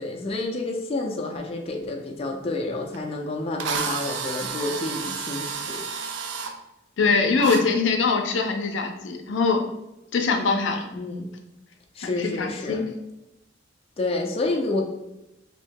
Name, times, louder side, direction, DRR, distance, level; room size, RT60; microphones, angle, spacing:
voice 1, 0.0-5.8 10.9-11.3 12.0-12.8 14.0-14.8, left 2 dB, 30° left, 1 dB, 0.4 m, -29 dB
Drill, 2.9-3.0 3.6-6.5 7.4-7.6, right 5 dB, 80° right, 0.4 m, -30 dB
voice 2, 7.0-9.6 10.1-10.9 12.0-12.8, left 4 dB, 90° left, 4 dB, 0.5 m, -23 dB
3.0 x 2.7 x 3.5 m, 0.91 s
head